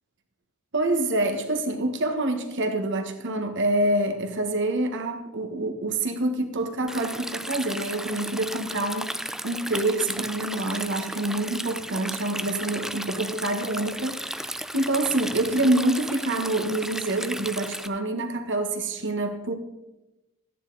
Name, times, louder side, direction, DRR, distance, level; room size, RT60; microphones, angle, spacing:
voice 1, 0.7-14.2 14.7-19.5, right 2 dB, 55° right, 5 dB, 1.5 m, -26 dB
Stream, 6.9-17.9, right 1 dB, ahead, 0.4 m, -34 dB
14.0 x 10.0 x 4.1 m, 0.99 s
head